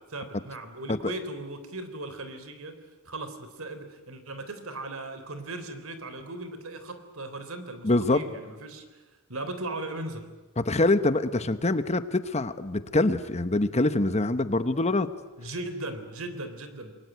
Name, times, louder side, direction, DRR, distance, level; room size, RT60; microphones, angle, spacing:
voice 1, 0.1-2.8 3.1-8.8 9.3-10.3 15.4-16.9, right 2 dB, 70° right, 9 dB, 3.6 m, -38 dB
voice 2, 7.8-8.2 10.6-15.1, left 2 dB, 30° left, 12 dB, 1.0 m, -24 dB
28.0 x 22.0 x 9.3 m, 1.2 s
head